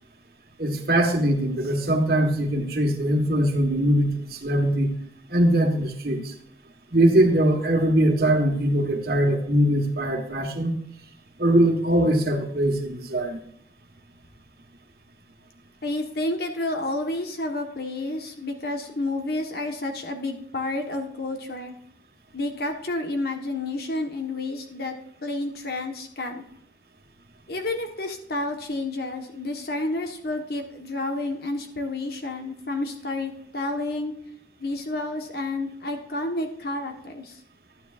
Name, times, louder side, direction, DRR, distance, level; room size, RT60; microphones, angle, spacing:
voice 1, 0.6-5.0 5.3-6.3 6.9-10.7 11.4-13.4, right 1 dB, 55° right, 3 dB, 1.5 m, -21 dB
voice 2, 15.8-21.7 22.3-24.9 25.2-26.4 27.5-34.1 34.6-37.4, left 2 dB, 55° left, 4 dB, 1.4 m, -30 dB
12.0 x 9.5 x 2.5 m, 0.69 s
head